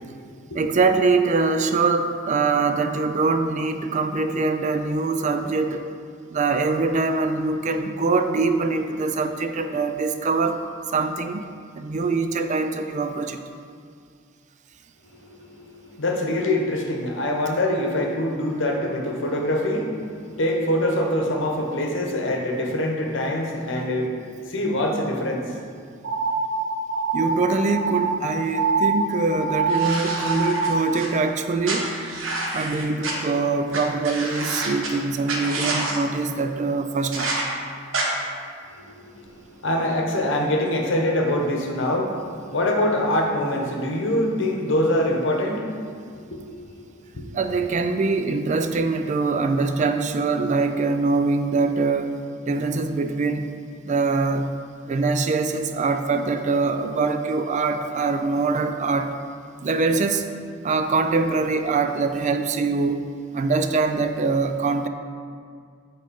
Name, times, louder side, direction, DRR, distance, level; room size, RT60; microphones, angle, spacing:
voice 1, 0.5-5.8 6.3-10.6 10.9-11.4 11.7-13.4 27.1-32.0 32.5-37.3 47.3-52.2 52.5-53.5 53.8-54.5 54.9-59.2 59.6-60.3 60.6-63.0 63.3-64.9, right 4 dB, 40° right, 8 dB, 0.4 m, -23 dB
voice 2, 15.1-25.6 38.7-47.3, left 1 dB, 65° left, 1 dB, 1.0 m, -25 dB
sound 1, 26.0-30.9, right 4 dB, 55° right, 0.8 m, -25 dB
sound 2, 29.7-31.1 31.6-33.1 33.7-33.8 34.0-34.9 35.3-36.0 37.1-37.4 37.9-38.0, right 2 dB, 85° right, 1.2 m, -28 dB
7.6 x 3.9 x 5.2 m, 2.2 s
head